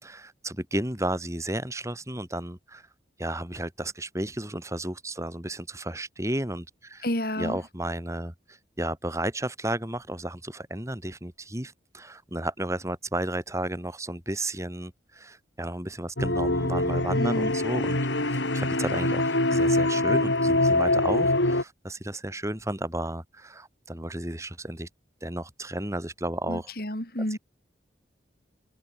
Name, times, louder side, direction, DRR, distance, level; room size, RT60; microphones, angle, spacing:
voice 1, 0.0-2.9 3.2-7.1 7.4-24.9 25.2-26.7, right 1 dB, 15° right, 5.9 m, -33 dB
voice 2, 7.0-7.6 17.2-17.5 26.5-27.4, left 1 dB, 55° left, 5.5 m, -30 dB
sound 1, 16.2-21.6, left 2 dB, 90° left, 6.1 m, -24 dB
head